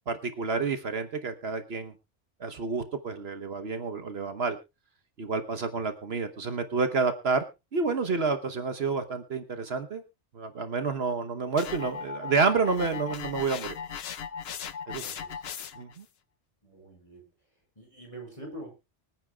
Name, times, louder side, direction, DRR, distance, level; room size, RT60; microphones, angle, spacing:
voice 1, 0.1-1.9 2.4-4.6 5.2-7.4 7.7-10.0 10.3-13.7 14.9-15.1 15.8-16.0, right 4 dB, 60° right, 8 dB, 1.3 m, -29 dB
sound 1, 11.6-16.0, left 7 dB, 65° left, 1.0 m, -38 dB
voice 2, 15.0-15.5 16.6-17.3 17.8-18.7, right 1 dB, 30° left, 2 dB, 5.3 m, -45 dB
25.0 x 9.1 x 2.3 m, 0.26 s
omnidirectional pair, 1.2 m